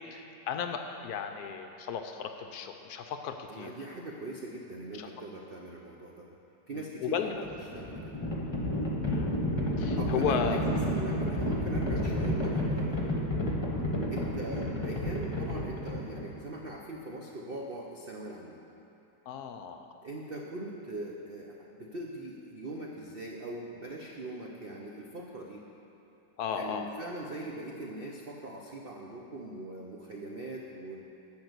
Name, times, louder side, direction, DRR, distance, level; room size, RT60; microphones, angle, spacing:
voice 1, 0.1-3.7 4.9-5.1 6.7-7.3 9.1-9.4 9.8-10.6 19.3-19.8 26.4-26.9, left 7 dB, 70° left, 6 dB, 0.9 m, -35 dB
voice 2, 3.5-6.4 6.7-8.2 10.0-13.4 14.1-18.6 20.0-25.7 26.5-31.0, right 1 dB, 75° right, -1 dB, 0.5 m, -41 dB
Livestock farm animals working animals, 7.3-16.4, left 1 dB, 15° left, 1.0 m, -31 dB
10.5 x 5.8 x 8.0 m, 2.9 s
omnidirectional pair, 2.1 m